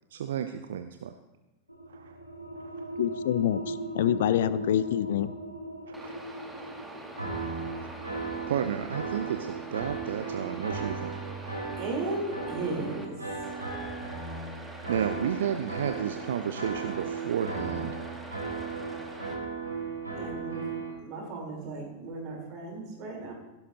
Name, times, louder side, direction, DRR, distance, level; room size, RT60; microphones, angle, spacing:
voice 1, 0.1-1.1 1.9-2.2 5.9-6.1 7.8-7.9 8.5-11.1 14.9-17.9, right 8 dB, 60° right, 8 dB, 0.5 m, -32 dB
sound 1, 1.7-12.9, equal, 90° left, 1.3 m, -41 dB
voice 2, 3.0-5.3, left 11 dB, 60° left, 16 dB, 0.4 m, -26 dB
sound 2, 5.9-13.1 13.4-19.4, right 2 dB, 5° right, 1.5 m, -45 dB
sound 3, 7.2-20.9, right 4 dB, 85° right, 3.6 m, -36 dB
voice 3, 11.8-13.2 20.2-20.6 21.0-23.3, right 2 dB, 40° right, 0 dB, 3.7 m, -35 dB
16.0 x 11.5 x 2.8 m, 1.1 s
figure-of-eight pair, 90°, 0 cm